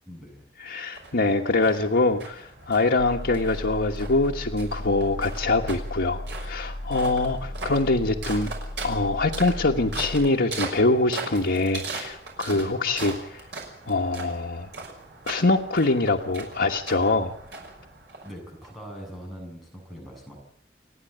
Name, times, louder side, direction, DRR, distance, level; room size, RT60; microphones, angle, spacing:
voice 1, 0.1-0.4 1.5-2.1 7.2-7.9 12.5-12.7 18.2-20.4, equal, ahead, -2 dB, 7.5 m, -43 dB
voice 2, 0.6-8.5 8.8-13.4 13.9-14.7 15.3-17.3, left 2 dB, 90° left, -1 dB, 1.4 m, -24 dB
sound 1, 0.9-18.7, right 3 dB, 90° right, 5.9 m, -40 dB
sound 2, 3.0-10.3, left 1 dB, 60° left, 1.5 m, -36 dB
29.5 x 9.9 x 9.2 m, 0.67 s
head